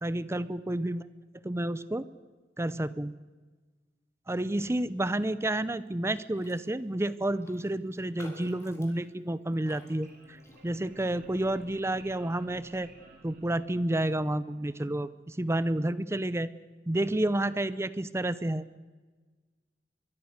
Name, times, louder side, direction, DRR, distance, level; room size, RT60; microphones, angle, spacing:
voice 1, 0.0-1.0 1.4-2.1 2.6-3.1 4.3-12.9 13.2-16.5 16.9-18.7, right 1 dB, 15° right, 16 dB, 0.6 m, -30 dB
Raindrop, 6.3-6.7 6.9-7.0 7.4-11.0 11.4-11.7, left 1 dB, 15° left, 3.8 m, -53 dB
sound 1, 9.9-14.2, right 1 dB, 55° right, 4.5 m, -55 dB
23.5 x 22.5 x 6.6 m, 1.3 s
head